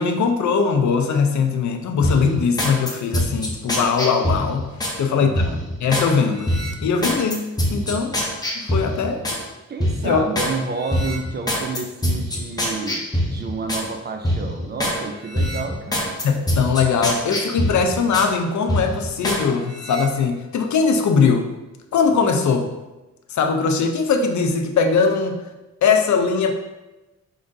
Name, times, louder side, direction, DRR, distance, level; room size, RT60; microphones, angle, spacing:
voice 1, 0.0-4.7 5.0-5.3 5.8-6.5 6.8-8.2 8.5-9.2 10.0-10.2 16.2-21.5 21.9-22.7 23.3-25.4 25.8-26.5, left 5 dB, 70° left, 5 dB, 0.5 m, -20 dB
sound 1, 2.0-5.0 5.4-6.1 6.4-9.4 9.8-10.5 10.9-13.9 14.2-15.0 15.3-18.3 18.7-19.4 19.8-20.0, equal, 15° left, 0.6 m, -24 dB
voice 2, 5.1-5.7 9.7-16.2, right 3 dB, 35° right, 4 dB, 0.4 m, -30 dB
4.8 x 3.7 x 2.6 m, 1.1 s
wide cardioid pair, 160°, 30 cm